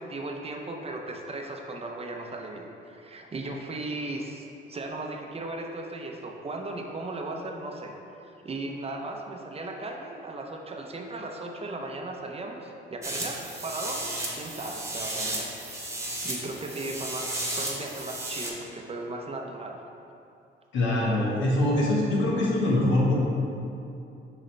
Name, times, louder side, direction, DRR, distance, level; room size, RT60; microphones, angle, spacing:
voice 1, 0.0-7.9 8.2-15.6 16.2-19.8, right 2 dB, 30° right, 2 dB, 0.7 m, -37 dB
sound 1, 13.0-18.5, right 1 dB, 15° right, 1.1 m, -34 dB
voice 2, 20.7-23.2, left 1 dB, 75° left, -4 dB, 1.4 m, -23 dB
6.5 x 4.9 x 3.3 m, 2.6 s
cardioid pair, 90°, 20 cm